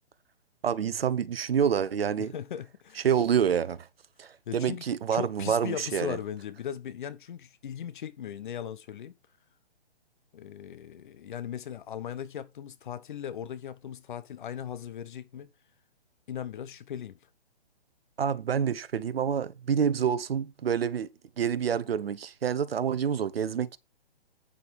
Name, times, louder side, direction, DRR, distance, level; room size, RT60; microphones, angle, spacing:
voice 1, 0.6-2.3 3.0-3.8 4.2-6.2 18.2-21.1 21.4-23.8, right 7 dB, 65° right, 1.1 m, -27 dB
voice 2, 2.2-3.1 4.5-4.8 5.1-9.1 10.3-15.5 16.3-17.2, left 9 dB, 50° left, 1.1 m, -38 dB
8.9 x 7.5 x 3.6 m
hypercardioid pair, 140°, 32 cm